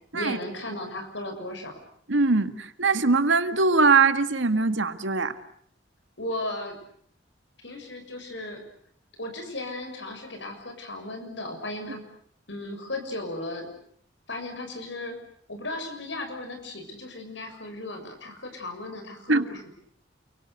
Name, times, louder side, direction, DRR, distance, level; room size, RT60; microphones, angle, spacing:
voice 1, 0.1-1.8 6.2-6.8 7.6-8.6 9.2-12.0 12.5-13.7 14.3-15.2 15.5-19.7, left 1 dB, 75° left, 5 dB, 6.8 m, -36 dB
voice 2, 2.1-5.4 19.3-19.5, right 4 dB, 85° right, 10 dB, 1.9 m, -22 dB
29.0 x 24.0 x 8.1 m, 0.63 s
head